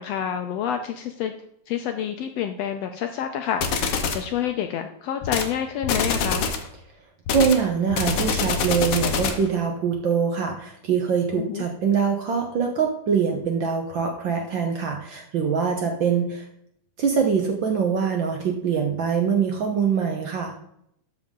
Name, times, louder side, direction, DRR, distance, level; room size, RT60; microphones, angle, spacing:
voice 1, 0.0-1.3 1.7-6.5 11.3-11.6, left 9 dB, 80° left, 6 dB, 1.5 m, -28 dB
sound 1, 3.6-4.3 5.2-5.5 5.8-6.7 7.3-9.5, left 5 dB, 65° left, 1.5 m, -25 dB
voice 2, 7.3-16.5 17.0-20.5, right 6 dB, 75° right, 3 dB, 1.1 m, -23 dB
12.5 x 5.7 x 3.7 m, 0.75 s
omnidirectional pair, 3.5 m